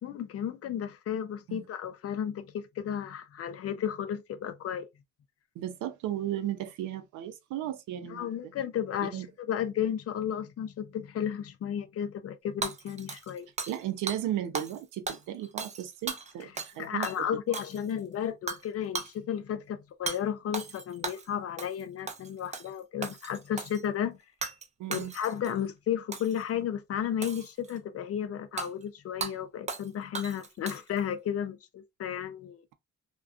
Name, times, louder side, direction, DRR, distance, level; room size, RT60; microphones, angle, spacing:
voice 1, 0.0-4.9 8.0-13.5 16.8-24.2 24.9-32.6, left 9 dB, 50° left, 0.5 m, -33 dB
voice 2, 5.6-8.5 9.0-9.3 13.7-17.2 24.8-25.1, right 12 dB, 85° right, 0.5 m, -35 dB
Hammer / Shatter, 12.6-13.8 14.1-14.2 14.5-14.8 15.1-16.8 17.0-17.2 17.5-18.0 18.5-18.7 18.9-19.1 20.1-20.2 20.5-21.3 21.6-21.8 22.1-22.7 23.0-23.8 24.4-24.7 24.9-25.5 26.1-26.4 27.2-27.8 28.6-28.7 29.2-29.3 29.7-29.9 30.1-31.0, right 4 dB, 25° right, 0.4 m, -37 dB
2.4 x 2.2 x 2.4 m
cardioid pair, 90°, 30 cm